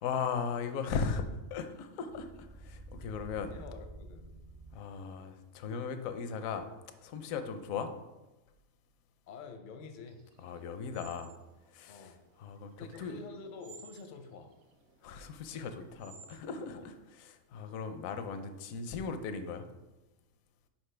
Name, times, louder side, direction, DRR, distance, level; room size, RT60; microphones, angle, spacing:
voice 1, 0.0-3.6 4.7-6.7 7.0-7.9 10.4-11.3 11.7-13.2 15.0-19.7, left 5 dB, 80° left, 8 dB, 1.0 m, -38 dB
sound 1, 2.1-5.1, right 2 dB, 60° right, 1.0 m, -49 dB
voice 2, 3.5-4.3 9.3-10.2 11.9-12.2 12.8-14.5 16.7-16.9, left 5 dB, 55° left, 6 dB, 0.6 m, -48 dB
sound 2, 10.1-16.6, right 5 dB, 85° right, 1.1 m, -58 dB
5.9 x 5.2 x 3.2 m, 1.1 s
omnidirectional pair, 1.4 m